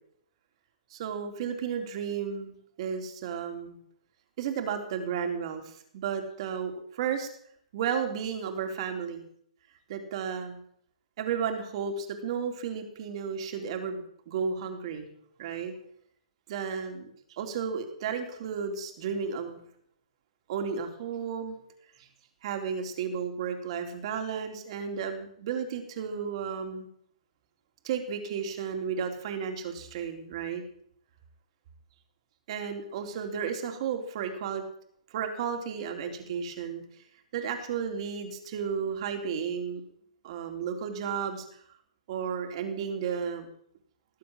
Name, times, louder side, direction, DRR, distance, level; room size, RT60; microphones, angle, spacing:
voice 1, 0.9-3.8 4.4-7.3 7.7-9.2 9.9-10.6 11.2-15.1 15.4-15.7 16.5-19.6 20.5-21.5 22.4-26.9 27.8-30.6 32.5-34.6 35.1-36.8 37.3-39.8 40.2-41.5 42.1-43.5, right 7 dB, 50° right, 5 dB, 3.7 m, -33 dB
19.5 x 7.8 x 8.9 m, 0.66 s
hypercardioid pair, 125°, 4 cm